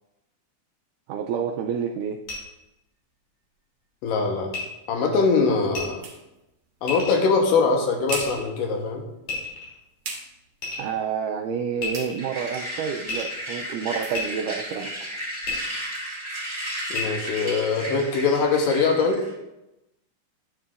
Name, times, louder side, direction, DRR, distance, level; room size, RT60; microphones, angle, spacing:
voice 1, 1.1-2.2 10.8-14.9, right 7 dB, 85° right, 3 dB, 1.8 m, -29 dB
sound 1, 2.2-2.4 4.5-4.6 5.7-5.8 6.9-7.2 8.1-8.5 9.3-9.8 10.6-10.9 11.8-12.3 13.1-13.4 14.1-14.2 15.4-15.5 16.9-17.0, left 4 dB, 55° left, 4.2 m, -31 dB
voice 2, 4.0-4.6 4.9-6.0 6.8-9.0 16.9-19.2, left 4 dB, 75° left, 2 dB, 2.6 m, -22 dB
sound 2, 4.3-15.8, right 4 dB, 55° right, 1.7 m, -44 dB
sound 3, 12.2-19.3, right 1 dB, 10° right, 2.7 m, -34 dB
10.0 x 9.7 x 2.5 m, 0.93 s
omnidirectional pair, 4.2 m